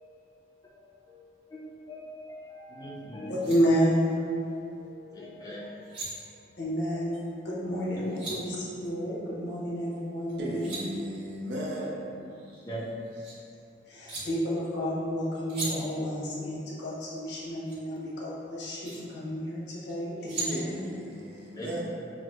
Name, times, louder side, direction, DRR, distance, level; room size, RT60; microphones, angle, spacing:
voice 1, 1.5-3.3 4.8-5.6 8.0-8.2 12.7-12.8 21.6-21.8, equal, 20° left, 0.4 m, -41 dB
sound 1, 3.0-3.1 3.3-3.6 5.6-6.1 7.7-8.4 10.3-10.8 12.2-13.3 14.1-14.2 15.5-15.7 17.7-17.8 18.6-19.0 19.9-20.5, right 3 dB, 30° right, 1.0 m, -38 dB
voice 2, 3.3-4.2 6.6-10.8 13.9-20.9, equal, 75° left, 0.6 m, -30 dB
voice 3, 10.4-12.2 20.5-21.8, equal, 80° right, 0.5 m, -36 dB
4.3 x 2.0 x 2.3 m
head